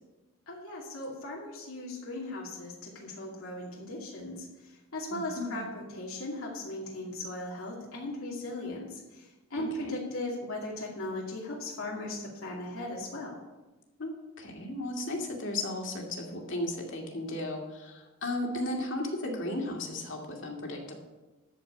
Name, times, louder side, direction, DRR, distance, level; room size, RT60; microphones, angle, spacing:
voice 1, 0.5-13.4, left 1 dB, 90° left, -3 dB, 2.4 m, -38 dB
voice 2, 5.1-5.6 9.5-9.9 14.0-20.9, left 1 dB, 60° left, 0 dB, 2.4 m, -35 dB
13.5 x 5.2 x 8.5 m, 1.1 s
head